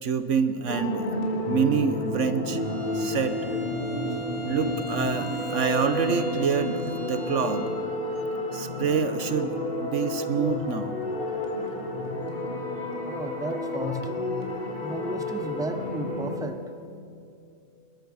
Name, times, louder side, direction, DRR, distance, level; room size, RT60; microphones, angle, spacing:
voice 1, 0.0-1.1 1.5-2.6 2.9-3.4 4.4-7.7 8.5-9.5 9.8-11.0, right 6 dB, 70° right, 11 dB, 1.4 m, -26 dB
sound 1, 0.7-16.4, left 1 dB, 45° left, 3.7 m, -31 dB
Bowed string instrument, 2.5-7.8, equal, 80° left, 7.7 m, -40 dB
voice 2, 13.0-14.0 14.8-16.6, right 2 dB, 5° right, 8 dB, 0.9 m, -34 dB
21.5 x 21.0 x 6.4 m, 2.6 s
omnidirectional pair, 1.3 m